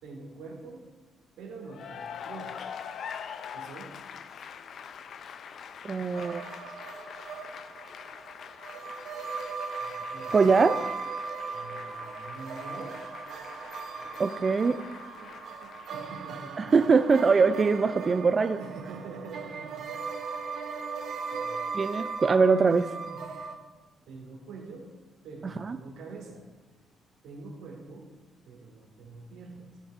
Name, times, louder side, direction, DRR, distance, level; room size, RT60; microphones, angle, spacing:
voice 1, 0.0-0.8 1.4-2.8 3.5-3.9 9.8-10.7 11.5-13.0 13.9-14.4 14.8-14.9 15.2-15.3 15.6-16.7 18.6-20.0 21.3-21.6 23.1-23.2 24.1-24.9 25.2-26.5 27.2-28.1 28.4-29.8, right 3 dB, 90° right, 0 dB, 1.8 m, -45 dB
Cheering / Applause, 1.6-16.6, left 7 dB, 60° left, 0.4 m, -44 dB
voice 2, 5.8-6.4 10.3-10.8 14.2-14.8 16.6-18.6 21.7-22.9 25.7-25.8, right 4 dB, 35° right, 9 dB, 0.3 m, -22 dB
sound 1, 6.1-23.6, right 5 dB, 65° right, 0.8 m, -38 dB
14.5 x 5.4 x 2.5 m, 1.3 s
cardioid pair, 90°, 0 cm